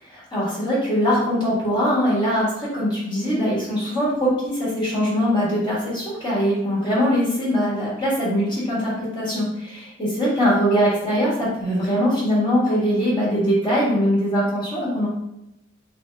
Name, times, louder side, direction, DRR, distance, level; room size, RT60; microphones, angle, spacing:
voice 1, 0.0-15.1, equal, 25° left, -8 dB, 1.7 m, -22 dB
3.8 x 3.5 x 3.5 m, 0.87 s
head